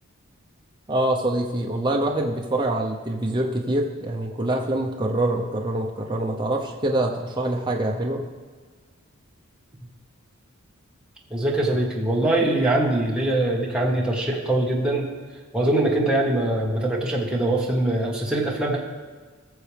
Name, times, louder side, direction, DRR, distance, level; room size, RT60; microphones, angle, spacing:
voice 1, 0.9-8.2, right 1 dB, 20° right, 0 dB, 0.8 m, -25 dB
voice 2, 11.3-15.0 15.5-18.8, right 1 dB, 5° right, -4 dB, 1.5 m, -22 dB
20.0 x 6.9 x 3.5 m, 1.4 s
head